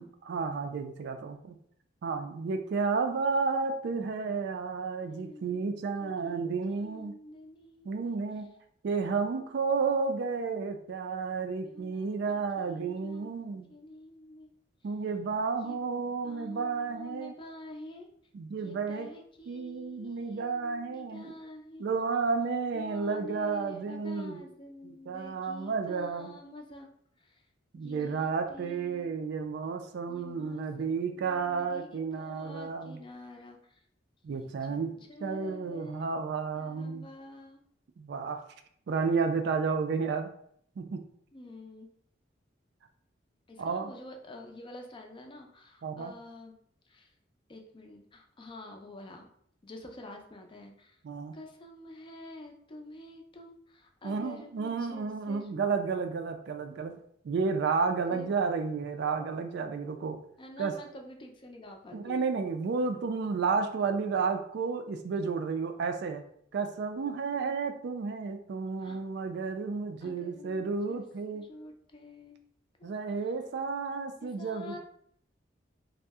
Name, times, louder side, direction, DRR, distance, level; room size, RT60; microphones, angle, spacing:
voice 1, 0.0-1.6 2.0-7.1 7.8-8.5 8.8-13.7 14.8-17.3 18.3-19.1 19.5-21.3 21.8-24.4 24.8-26.3 27.7-33.0 34.2-34.9 35.2-37.1 38.0-38.4 38.9-40.3 40.8-41.0 43.6-43.9 45.8-46.1 51.0-51.4 54.0-56.9 57.2-60.2 60.6-60.7 61.9-66.2 66.5-71.5 72.8-74.8, right 5 dB, 65° right, 7 dB, 0.3 m, -32 dB
voice 2, 5.0-8.1 11.6-14.5 15.6-15.8 16.2-18.1 18.6-21.9 22.7-26.9 27.2-27.4 27.7-29.2 30.1-33.8 34.3-37.6 41.3-41.9 43.5-46.5 46.9-47.1 47.5-49.3 49.6-51.0 51.3-55.6 58.1-58.3 60.4-62.3 68.8-69.0 70.0-71.0 71.3-72.4 72.8-72.9 74.2-74.8, left 1 dB, 25° left, 3 dB, 0.4 m, -48 dB
2.6 x 2.0 x 3.4 m, 0.65 s
head